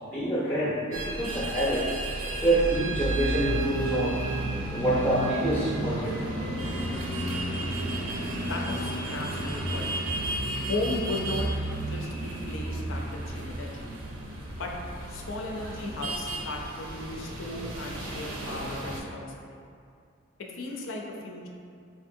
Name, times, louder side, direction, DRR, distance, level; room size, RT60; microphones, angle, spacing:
voice 1, 0.0-1.9 2.4-4.2 4.7-6.2, right 1 dB, 10° left, -8 dB, 0.4 m, -26 dB
sound 1, 0.9-19.0, right 1 dB, 75° right, 0.5 m, -32 dB
voice 2, 8.4-9.9 10.7-11.5 11.8-13.9 14.6-14.7 15.1-19.5 20.4-21.5, left 2 dB, 70° left, 0 dB, 0.5 m, -35 dB
4.0 x 2.6 x 2.6 m, 2.4 s
head